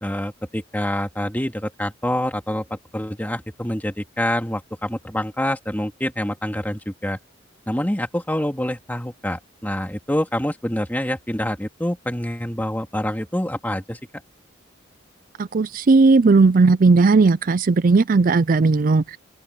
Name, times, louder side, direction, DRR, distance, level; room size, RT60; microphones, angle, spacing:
voice 1, 0.0-7.2 7.7-14.0, left 1 dB, 10° left, 2.3 m, -26 dB
voice 2, 15.4-19.2, right 3 dB, 45° right, 0.4 m, -16 dB
open air
head